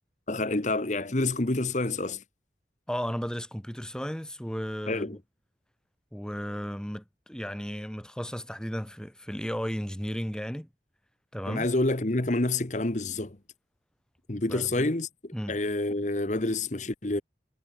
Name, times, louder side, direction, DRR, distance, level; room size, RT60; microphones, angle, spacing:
voice 1, 0.3-2.2 4.9-5.2 11.5-13.4 14.3-15.1 15.5-17.2, left 2 dB, 40° left, 1.2 m, -28 dB
voice 2, 2.9-5.2 6.1-10.7 11.3-11.7 14.5-14.9 15.3-15.5, equal, 5° left, 3.0 m, -34 dB
head